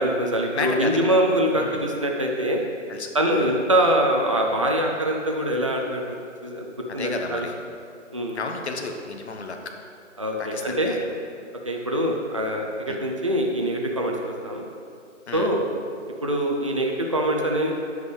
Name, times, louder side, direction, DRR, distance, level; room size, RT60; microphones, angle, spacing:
voice 1, 0.0-2.6 3.1-6.2 6.4-6.7 6.9-7.5 8.1-8.4 10.2-11.0 11.6-14.7 15.3-15.6 16.2-17.7, right 1 dB, 25° right, 1 dB, 0.4 m, -24 dB
voice 2, 0.5-1.0 1.5-1.9 2.9-3.5 6.9-7.5 8.3-9.6 10.4-11.0 12.9-13.0 15.3-15.5, left 4 dB, 60° left, 4 dB, 1.1 m, -32 dB
9.3 x 8.0 x 3.3 m, 2.4 s
figure-of-eight pair, 150°, 38 cm